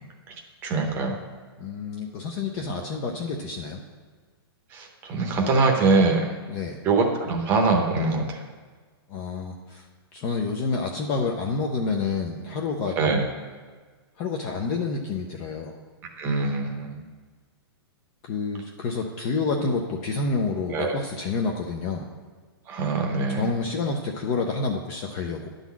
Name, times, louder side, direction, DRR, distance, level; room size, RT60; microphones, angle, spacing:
voice 1, 0.6-1.2 4.7-6.2 6.8-8.4 13.0-13.3 16.2-17.0 20.7-20.9 22.7-23.5, right 3 dB, 15° right, 3 dB, 0.8 m, -23 dB
voice 2, 1.6-3.8 6.5-6.8 9.1-9.8 10.1-13.0 14.2-15.8 18.2-22.1 23.3-25.5, left 4 dB, 20° left, 2 dB, 0.4 m, -28 dB
11.0 x 3.9 x 7.2 m, 1.5 s
hypercardioid pair, 175°, 13 cm